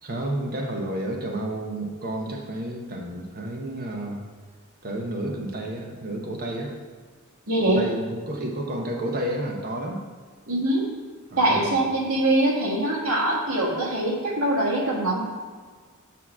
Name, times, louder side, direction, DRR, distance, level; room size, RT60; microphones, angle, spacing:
voice 1, 0.0-4.2 4.8-6.7 7.6-10.0 11.3-11.9, right 1 dB, 45° right, 1 dB, 0.9 m, -31 dB
voice 2, 7.5-7.8 10.5-10.8 11.4-15.3, right 1 dB, 90° right, -4 dB, 1.8 m, -23 dB
8.5 x 2.9 x 6.1 m, 1.5 s
head